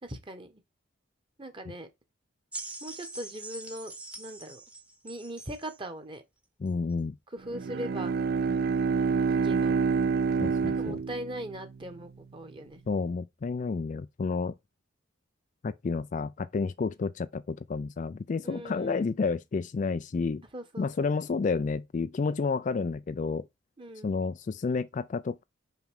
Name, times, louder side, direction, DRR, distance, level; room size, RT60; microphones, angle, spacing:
voice 1, 0.0-0.6 1.4-1.9 2.8-4.6 5.0-6.2 7.3-8.1 9.3-9.8 10.6-12.8 18.4-19.1 20.5-21.2 23.8-24.2, right 1 dB, 25° right, 1.2 m, -40 dB
sound 1, 2.5-5.8 6.7-6.8, right 2 dB, 5° right, 1.0 m, -43 dB
voice 2, 6.6-7.2 10.4-11.0 12.9-14.6 15.6-20.4 20.8-23.5 24.0-25.4, left 4 dB, 40° left, 0.3 m, -30 dB
Bowed string instrument, 7.5-11.8, right 5 dB, 50° right, 0.4 m, -27 dB
5.7 x 5.4 x 3.6 m
head